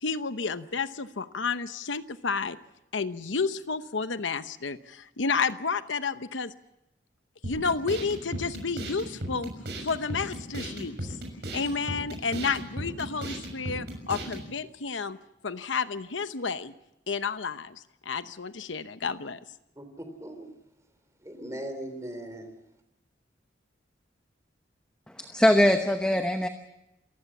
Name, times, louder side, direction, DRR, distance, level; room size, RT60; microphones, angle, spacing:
voice 1, 0.0-2.6 2.9-6.5 7.4-9.5 9.8-11.2 11.5-15.2 15.4-16.7 17.1-19.4, left 5 dB, 90° left, 12 dB, 0.9 m, -31 dB
sound 1, 7.4-14.5, right 1 dB, 65° right, 6.5 m, -37 dB
voice 2, 19.8-20.5 21.2-22.5, right 1 dB, 15° right, 7 dB, 3.3 m, -39 dB
voice 3, 25.2-26.5, left 1 dB, 5° left, 6 dB, 1.0 m, -22 dB
28.0 x 15.5 x 7.3 m, 0.89 s
head